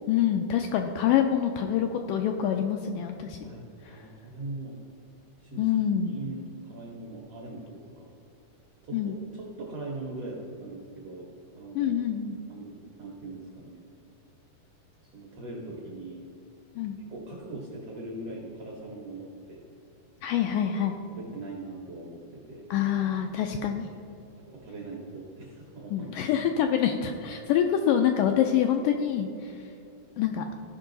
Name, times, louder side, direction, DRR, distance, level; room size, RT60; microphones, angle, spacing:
voice 1, 0.1-3.4 3.9-4.0 5.6-6.1 8.9-9.2 11.8-12.4 16.8-17.0 20.2-21.0 22.7-23.9 25.9-29.5 30.2-30.5, left 9 dB, 85° left, 4 dB, 1.9 m, -26 dB
voice 2, 3.4-4.8 5.4-5.7 6.1-8.1 8.8-12.0 12.5-12.7 13.0-13.8 15.1-16.2 17.0-19.6 21.1-22.7 24.2-26.1, right 2 dB, 65° right, -2 dB, 1.5 m, -41 dB
15.0 x 5.4 x 3.9 m, 2.7 s
omnidirectional pair, 4.2 m